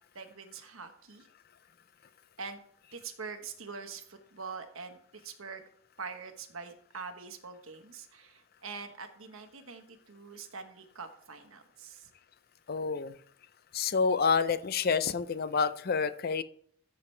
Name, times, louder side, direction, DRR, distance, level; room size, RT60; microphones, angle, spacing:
voice 1, 0.1-1.3 2.4-2.6 2.9-5.6 6.0-12.1, right 5 dB, 75° right, 7 dB, 1.2 m, -44 dB
voice 2, 12.7-13.2 13.7-16.4, left 5 dB, 45° left, 13 dB, 0.5 m, -28 dB
14.5 x 6.9 x 3.3 m, 0.62 s
head